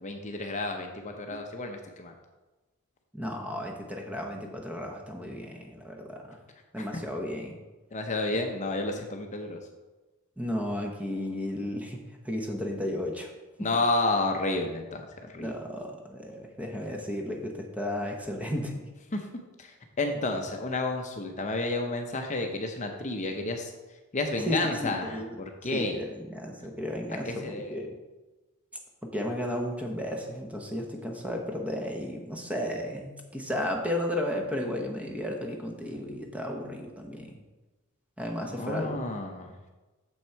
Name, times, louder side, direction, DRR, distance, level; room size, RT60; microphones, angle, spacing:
voice 1, 0.0-2.1 6.8-6.9 7.9-9.6 13.6-15.0 15.3-15.5 19.1-19.2 19.6-23.7 24.1-25.2 25.6-26.0 27.2-27.8 38.4-39.6, left 2 dB, 35° left, 4 dB, 0.6 m, -31 dB
voice 2, 3.1-6.4 6.7-7.6 10.4-12.0 12.2-13.3 13.6-13.7 15.3-18.8 24.5-25.4 25.7-26.1 26.3-28.0 29.1-37.4 38.2-39.0, left 1 dB, 5° right, 1 dB, 0.8 m, -34 dB
7.1 x 6.0 x 4.5 m, 1.2 s
head